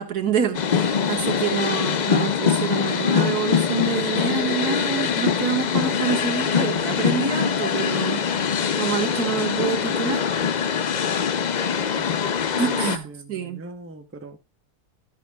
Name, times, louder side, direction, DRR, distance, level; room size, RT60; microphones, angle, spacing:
voice 1, 0.0-10.3 12.6-13.7, right 7 dB, 80° right, 2.0 m, -27 dB
sound 1, 0.5-13.0, left 7 dB, 60° left, 0.4 m, -23 dB
voice 2, 12.0-12.3 12.8-14.4, right 2 dB, 10° right, 0.7 m, -42 dB
11.5 x 10.0 x 2.3 m
omnidirectional pair, 1.6 m